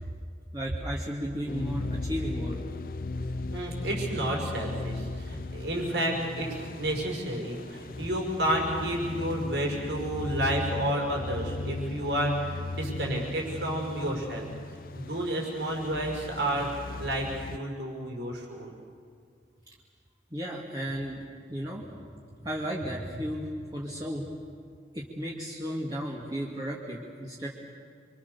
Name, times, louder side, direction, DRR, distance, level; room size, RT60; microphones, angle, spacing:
voice 1, 0.5-2.6 20.3-21.2 21.5-24.3 24.9-27.5, equal, 20° right, -5 dB, 2.3 m, -34 dB
sound 1, 1.5-17.6, left 2 dB, 50° left, 0.6 m, -36 dB
voice 2, 3.5-14.5 14.9-16.7 17.0-18.7, right 1 dB, 80° right, 0 dB, 6.1 m, -31 dB
29.0 x 24.5 x 7.0 m, 2.2 s
head